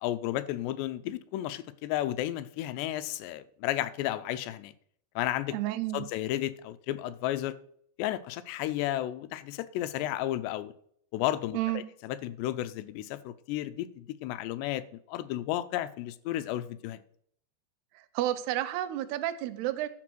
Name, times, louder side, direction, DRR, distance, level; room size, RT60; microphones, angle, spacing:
voice 1, 0.0-4.7 5.2-5.6 5.9-7.6 8.0-10.7 11.1-17.0, left 14 dB, 90° left, 2.7 m, -33 dB
voice 2, 5.5-6.0 11.5-11.8 17.9-19.9, right 14 dB, 80° right, 2.7 m, -31 dB
12.0 x 5.0 x 6.2 m
omnidirectional pair, 4.8 m